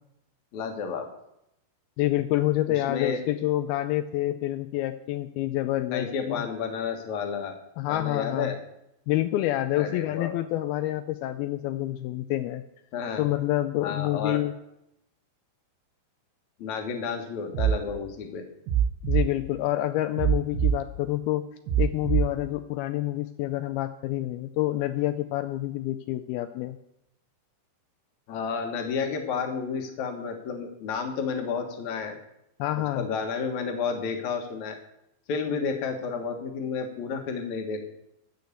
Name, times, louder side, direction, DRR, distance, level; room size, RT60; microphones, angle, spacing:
voice 1, 0.5-1.1 2.7-3.2 5.9-7.6 7.9-8.6 9.7-10.4 12.9-13.2 13.8-14.4 16.6-18.4 28.3-32.2 32.9-34.8 35.3-37.9, left 5 dB, 55° left, 5 dB, 2.2 m, -31 dB
voice 2, 2.0-6.5 7.8-8.6 9.1-12.6 13.2-14.5 19.1-21.4 21.8-26.8 32.6-33.1, left 15 dB, 85° left, 9 dB, 2.2 m, -28 dB
sound 1, 17.5-17.8 18.7-19.3 20.2-20.8 21.7-22.3, right 9 dB, 90° right, 3.5 m, -23 dB
13.0 x 6.5 x 8.3 m, 0.82 s
omnidirectional pair, 5.0 m